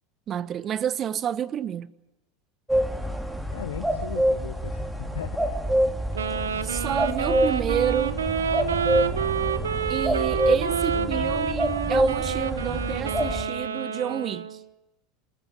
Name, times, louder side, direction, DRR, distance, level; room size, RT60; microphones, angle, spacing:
voice 1, 0.3-1.9 6.6-8.2 9.9-14.6, right 9 dB, 35° right, 1.1 m, -29 dB
sound 1, 2.7-13.4, equal, 5° right, 3.3 m, -27 dB
voice 2, 3.5-5.4 7.7-7.8 10.4-10.5 10.8-11.2, left 9 dB, 80° left, 1.1 m, -38 dB
Wind instrument woodwind instrument, 6.1-14.6, right 7 dB, 80° right, 1.3 m, -28 dB
sound 2, 6.5-13.1, right 14 dB, 55° right, 1.4 m, -41 dB
27.0 x 14.5 x 8.4 m
hypercardioid pair, 80°, 0 cm